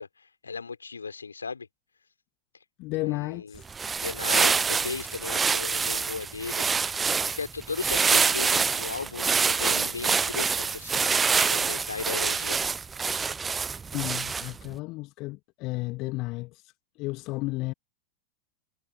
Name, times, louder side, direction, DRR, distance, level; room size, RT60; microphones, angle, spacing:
voice 1, 0.0-1.7 3.0-3.6 3.9-6.7 7.3-11.1 11.4-12.6, left 5 dB, 75° left, 4.3 m, -36 dB
voice 2, 2.8-3.7 13.9-17.7, left 22 dB, 40° left, 1.6 m, -33 dB
sound 1, 3.6-14.7, right 5 dB, 15° right, 0.6 m, -26 dB
figure-of-eight pair, 90°, 0 cm